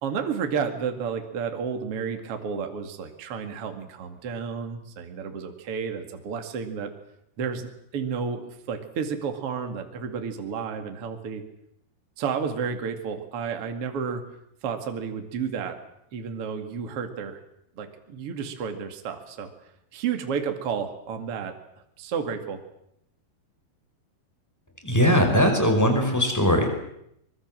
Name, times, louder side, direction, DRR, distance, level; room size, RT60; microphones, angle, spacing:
voice 1, 0.0-6.9 7.4-7.7 7.9-11.4 12.2-14.2 14.6-15.8 16.1-17.4 17.8-19.5 19.9-21.5 22.0-22.6, right 6 dB, 40° right, 5 dB, 2.6 m, -31 dB
voice 2, 24.8-26.7, equal, 5° left, 4 dB, 5.0 m, -20 dB
25.0 x 22.5 x 7.7 m, 0.75 s
omnidirectional pair, 4.9 m